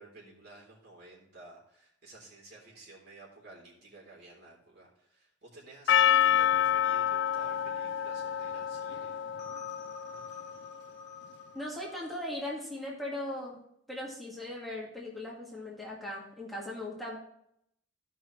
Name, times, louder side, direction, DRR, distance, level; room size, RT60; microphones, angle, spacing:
voice 1, 0.0-9.2, right 2 dB, 60° right, -3 dB, 3.5 m, -53 dB
Percussion, 5.9-10.4, left 10 dB, 65° left, 0.3 m, -28 dB
sound 1, 6.2-12.2, left 5 dB, 40° left, 1.1 m, -47 dB
voice 2, 11.5-13.6 13.9-17.2, left 1 dB, ahead, -5 dB, 1.9 m, -38 dB
15.0 x 5.5 x 3.1 m, 0.74 s
head